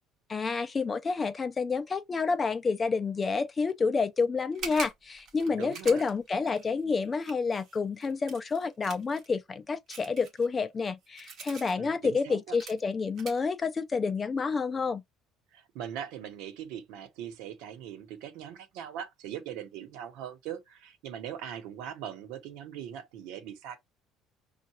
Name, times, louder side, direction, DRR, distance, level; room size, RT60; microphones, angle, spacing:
voice 1, 0.3-15.0, left 4 dB, 20° left, 0.4 m, -29 dB
sound 1, 4.5-9.3 9.9-11.7 12.2-12.3 12.6-12.8 13.2-13.4, right 5 dB, 40° right, 1.2 m, -43 dB
voice 2, 5.5-6.0 11.8-12.6 15.5-23.8, right 9 dB, 75° right, 1.0 m, -41 dB
5.6 x 2.4 x 3.0 m
cardioid pair, 170°, 0 cm